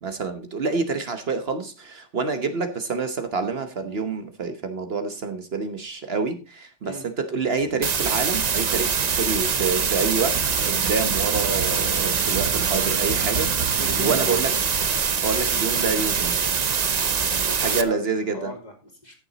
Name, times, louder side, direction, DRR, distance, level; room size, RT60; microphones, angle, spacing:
voice 1, 0.0-13.6 14.0-14.5 15.2-16.3 17.6-18.5, right 4 dB, 60° right, 8 dB, 1.2 m, -27 dB
sound 1, 7.4-15.1, right 6 dB, 80° right, 1.2 m, -35 dB
sound 2, 7.8-17.8, right 6 dB, 40° right, 0.7 m, -24 dB
voice 2, 13.7-14.4 17.2-19.2, left 1 dB, 35° left, 1 dB, 3.0 m, -39 dB
14.5 x 7.0 x 4.0 m, 0.35 s
omnidirectional pair, 1.2 m